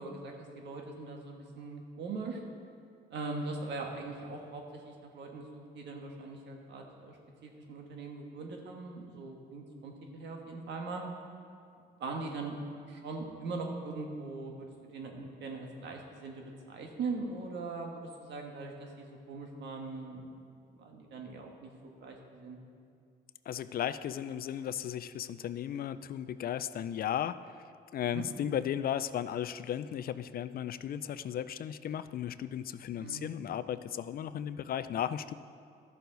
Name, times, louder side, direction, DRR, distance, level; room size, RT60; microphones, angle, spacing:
voice 1, 0.0-2.4 3.1-7.2 7.4-11.0 12.0-12.6 12.9-20.3 20.7-21.7 22.0-22.6 28.1-28.2 33.0-33.3, right 3 dB, 70° right, 2 dB, 1.6 m, -41 dB
voice 2, 23.5-27.4 27.9-35.3, left 10 dB, 55° left, 14 dB, 0.4 m, -35 dB
13.5 x 6.9 x 4.0 m, 2.3 s
cardioid pair, 85°, 19 cm